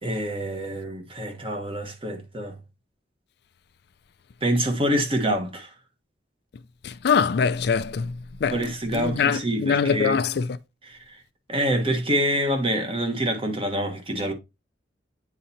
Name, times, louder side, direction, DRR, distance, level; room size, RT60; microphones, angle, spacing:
voice 1, 0.0-2.6 4.4-5.7 8.5-10.2 10.8-11.0 11.5-14.3, right 1 dB, 30° right, 1.2 m, -26 dB
voice 2, 6.8-8.1 8.4-8.6 8.9-10.5, left 6 dB, 60° left, 0.4 m, -23 dB
9.0 x 4.0 x 2.7 m
head